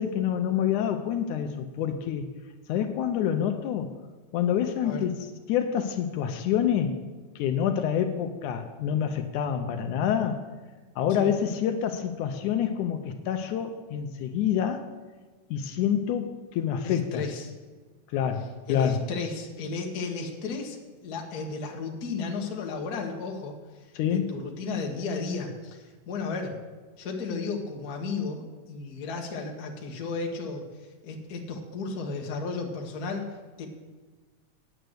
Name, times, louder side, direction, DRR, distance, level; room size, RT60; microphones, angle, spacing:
voice 1, 0.0-2.3 2.7-3.9 4.3-5.2 5.5-7.0 7.4-10.4 11.0-14.9 15.5-17.2 18.1-19.0 24.0-24.4, left 9 dB, 80° left, 7 dB, 2.1 m, -27 dB
voice 2, 16.8-17.5 18.7-20.8 21.0-23.5 24.1-26.6 27.0-30.6 31.0-33.3 33.6-33.7, left 4 dB, 45° left, 1 dB, 1.3 m, -34 dB
9.1 x 7.9 x 7.9 m, 1.4 s
omnidirectional pair, 3.7 m